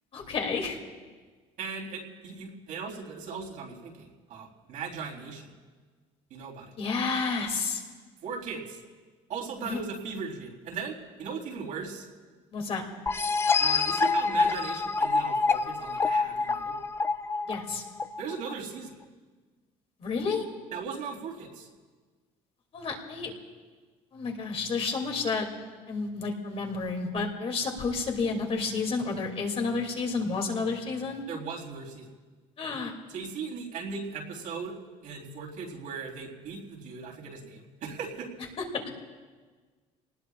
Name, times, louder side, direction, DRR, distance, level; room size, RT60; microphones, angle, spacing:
voice 1, 0.1-0.8 6.8-7.8 9.6-9.8 12.5-12.8 17.5-17.8 20.0-20.5 22.7-23.3 24.1-25.5 25.9-31.2 32.6-32.9 38.6-38.7, left 4 dB, 45° left, 2 dB, 2.8 m, -30 dB
voice 2, 1.6-5.5 6.3-6.7 8.2-8.8 9.3-12.1 13.6-16.8 18.2-19.0 20.7-21.7 31.3-32.1 33.1-34.8 35.0-38.3, right 5 dB, 70° right, -2 dB, 3.8 m, -38 dB
sound 1, 13.1-18.5, left 4 dB, 20° left, 0.6 m, -26 dB
26.5 x 19.0 x 2.5 m, 1.4 s
cardioid pair, 110°, 14 cm